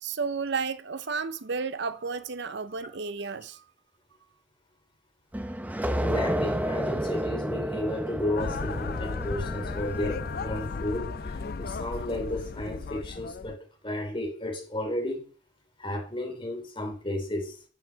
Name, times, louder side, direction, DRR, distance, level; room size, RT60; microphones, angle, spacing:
voice 1, 0.0-3.6, right 5 dB, 60° right, 0.6 m, -32 dB
sound 1, 5.3-11.7, right 1 dB, 10° right, 0.7 m, -32 dB
voice 2, 6.0-15.2 15.8-17.6, left 1 dB, 25° left, 3.1 m, -33 dB
sound 2, 8.4-13.5, left 4 dB, 50° left, 0.4 m, -35 dB
12.5 x 8.5 x 4.6 m
head